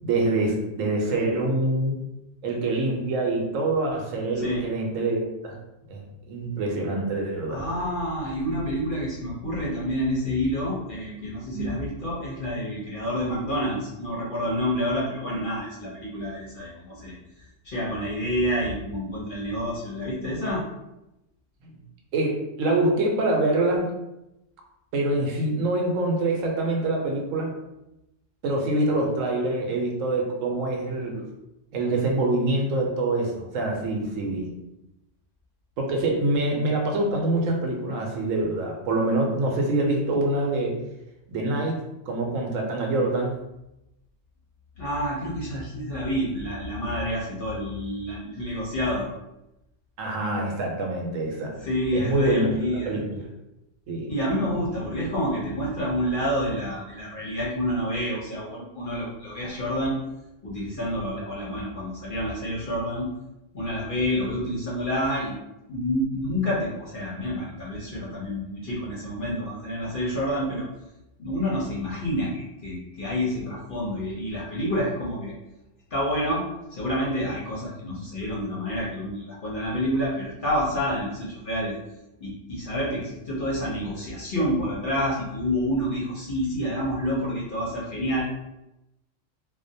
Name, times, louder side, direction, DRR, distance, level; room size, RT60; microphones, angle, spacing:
voice 1, 0.0-2.0 2.4-5.6 5.9-7.6 11.1-11.2 11.5-11.7 21.6-21.7 22.1-23.9 24.9-27.5 28.4-31.2 31.7-34.5 35.8-40.8 41.3-41.8 42.1-43.4 50.0-51.5 51.9-52.5 52.9-53.3 53.9-54.1, right 2 dB, 80° right, 1 dB, 1.0 m, -25 dB
voice 2, 7.5-20.6 44.8-49.1 51.6-52.9 54.1-60.0 60.4-63.1 63.5-65.4 65.7-70.7 71.2-75.3 75.9-76.4 76.7-81.8 82.2-88.2, equal, 55° left, -6 dB, 0.7 m, -28 dB
2.4 x 2.1 x 2.6 m, 0.93 s
omnidirectional pair, 1.3 m